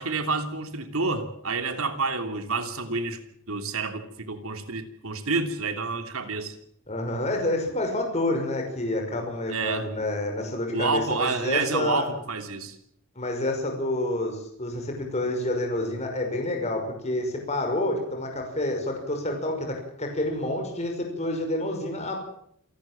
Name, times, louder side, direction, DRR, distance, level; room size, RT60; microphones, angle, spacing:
voice 1, 0.0-3.2 3.5-6.5 9.5-9.9 10.7-12.8, right 4 dB, 80° right, 7 dB, 3.1 m, -29 dB
voice 2, 6.9-12.1 13.2-22.2, left 1 dB, 30° left, 2 dB, 5.9 m, -28 dB
28.0 x 13.0 x 9.0 m, 0.70 s
head